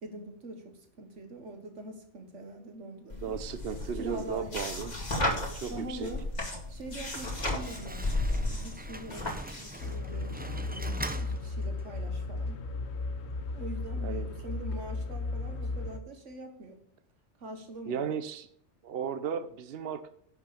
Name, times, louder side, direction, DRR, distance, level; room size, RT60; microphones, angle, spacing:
voice 1, 0.0-3.3 3.9-5.0 5.7-6.3 6.7-12.6 13.5-16.8 17.4-18.1, right 2 dB, 85° right, 5 dB, 1.7 m, -43 dB
sound 1, 3.1-9.9, left 1 dB, 35° left, 2.2 m, -34 dB
voice 2, 3.2-4.9 5.5-6.1 14.0-14.3 17.9-18.5 18.8-20.1, right 7 dB, 60° right, 10 dB, 0.9 m, -35 dB
Slam, 6.9-12.1, right 1 dB, 10° right, 0.6 m, -43 dB
sound 2, 9.8-16.0, left 3 dB, 65° left, 1.2 m, -35 dB
10.5 x 6.2 x 7.0 m, 0.64 s
omnidirectional pair, 1.2 m